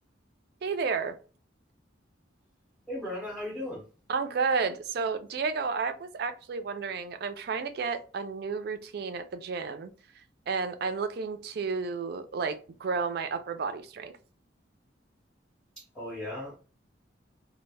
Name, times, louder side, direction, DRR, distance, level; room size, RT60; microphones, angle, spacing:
voice 1, 0.6-1.2 4.1-9.9 10.5-14.2, right 5 dB, 55° right, 0.3 m, -31 dB
voice 2, 2.9-3.8 15.8-16.6, left 1 dB, 5° left, 0.5 m, -36 dB
2.1 x 2.0 x 3.2 m
head